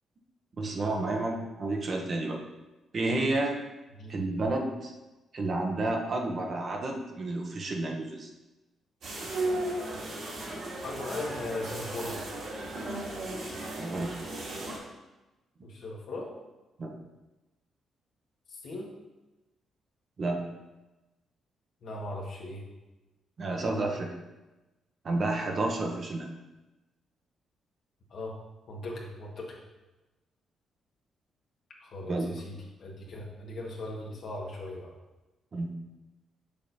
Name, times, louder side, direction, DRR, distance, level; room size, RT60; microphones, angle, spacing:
voice 1, 0.6-2.4 2.9-3.6 4.1-4.9 5.3-8.3 13.8-14.1 16.8-16.9 20.2-20.4 23.4-24.2 25.0-26.3 32.1-32.3 35.5-35.7, right 2 dB, 40° right, 1 dB, 0.9 m, -30 dB
sound 1, 9.0-14.8, right 1 dB, 60° right, 2.3 m, -35 dB
voice 2, 10.8-12.2 15.6-16.3 18.5-18.9 21.8-22.6 28.1-28.3 28.7-29.6 31.8-34.9, left 2 dB, 60° left, -2 dB, 1.5 m, -38 dB
6.7 x 6.3 x 2.7 m, 1.1 s
cardioid pair, 120°, 0 cm